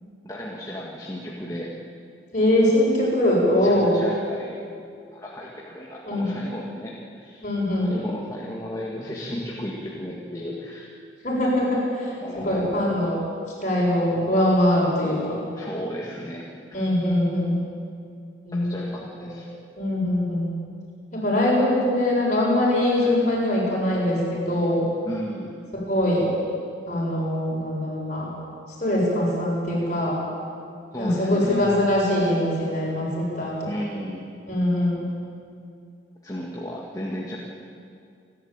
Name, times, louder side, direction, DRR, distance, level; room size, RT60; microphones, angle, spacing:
voice 1, 0.2-1.7 3.6-4.6 5.1-7.4 7.8-10.9 12.2-12.8 15.0-16.9 18.5-19.5 23.0-23.1 25.0-25.5 30.9-31.7 33.7-34.3 36.2-37.4, equal, 15° left, -4 dB, 2.0 m, -34 dB
voice 2, 2.3-4.0 6.0-6.2 7.4-7.9 11.2-12.2 12.4-13.2 13.6-15.3 16.7-17.6 18.5-18.7 19.2-19.3 19.8-20.5 21.1-24.8 25.7-26.3 26.9-28.3 28.8-30.2 31.0-33.7 34.5-35.1, left 1 dB, 40° left, -4 dB, 7.4 m, -22 dB
29.0 x 12.0 x 9.0 m, 2.4 s
head